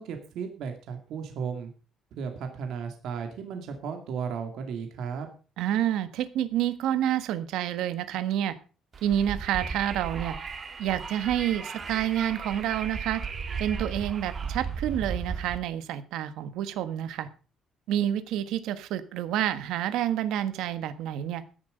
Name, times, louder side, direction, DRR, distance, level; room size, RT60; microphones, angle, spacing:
voice 1, 0.0-1.7 2.1-5.3, right 6 dB, 65° right, 5 dB, 2.3 m, -35 dB
voice 2, 5.6-8.5 9.0-10.4 10.8-13.2 13.6-17.3 17.9-21.4, right 11 dB, 85° right, 12 dB, 1.4 m, -28 dB
Wind, 8.9-15.6, right 5 dB, 30° right, 1.6 m, -35 dB
13.5 x 10.5 x 5.1 m, 0.36 s
cardioid pair, 165°, 0 cm